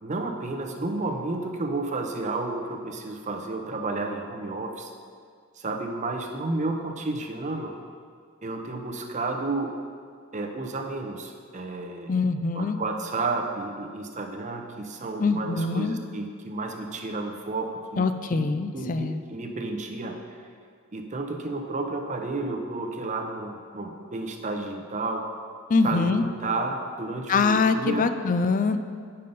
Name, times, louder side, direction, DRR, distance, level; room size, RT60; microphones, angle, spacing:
voice 1, 0.0-4.9 5.6-7.7 8.4-9.7 10.3-12.2 12.5-18.1 18.3-18.4 18.7-20.2 20.9-25.2 25.8-28.1, right 3 dB, 35° right, 3 dB, 0.8 m, -31 dB
voice 2, 12.1-12.8 15.2-16.0 18.0-19.2 25.7-26.2 27.3-28.8, left 4 dB, 40° left, 10 dB, 0.4 m, -23 dB
9.2 x 5.6 x 5.3 m, 2.1 s
head